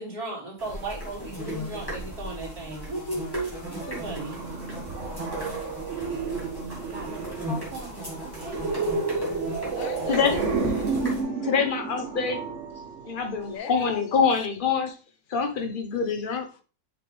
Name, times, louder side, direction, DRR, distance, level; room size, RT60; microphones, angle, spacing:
voice 1, 0.0-4.4 6.7-8.7, right 2 dB, 70° right, 2.9 m, -36 dB
sound 1, 0.6-11.2, equal, 15° left, 2.6 m, -36 dB
sound 2, 3.8-13.6, right 4 dB, 55° right, 1.4 m, -31 dB
voice 2, 4.7-5.3 8.7-10.4 10.7-10.8 13.5-14.1, left 8 dB, 65° left, 1.1 m, -41 dB
voice 3, 11.4-12.4 13.0-14.9 15.3-16.5, left 5 dB, 40° left, 1.0 m, -25 dB
6.6 x 6.1 x 3.3 m
omnidirectional pair, 1.6 m